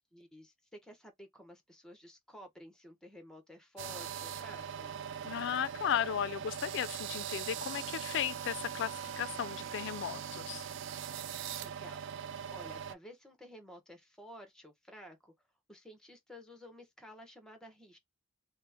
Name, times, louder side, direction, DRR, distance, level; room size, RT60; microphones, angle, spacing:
voice 1, 0.0-4.9 11.6-15.3 15.7-18.0, equal, 5° left, 0.8 m, -53 dB
sound 1, 3.8-12.9, right 8 dB, 65° right, 0.3 m, -41 dB
voice 2, 5.2-10.6, left 9 dB, 65° left, 0.3 m, -35 dB
3.0 x 2.0 x 3.3 m
head